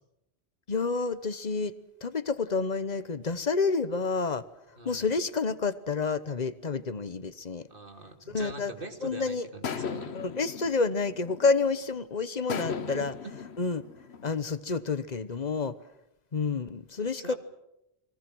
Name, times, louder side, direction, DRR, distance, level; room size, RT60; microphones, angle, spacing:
voice 1, 0.7-1.7 2.0-4.5 4.8-7.7 8.3-8.7 9.0-9.5 10.1-13.1 13.6-13.8 14.2-15.8 16.3-17.3, left 4 dB, 45° left, 13 dB, 1.1 m, -29 dB
voice 2, 7.7-10.2 12.9-13.3 17.2-17.4, right 3 dB, 60° right, 5 dB, 2.7 m, -43 dB
sound 1, 8.8-9.0 9.6-11.8 12.5-14.3, left 6 dB, 90° left, 1.3 m, -37 dB
29.5 x 22.0 x 6.2 m, 0.86 s
omnidirectional pair, 1.1 m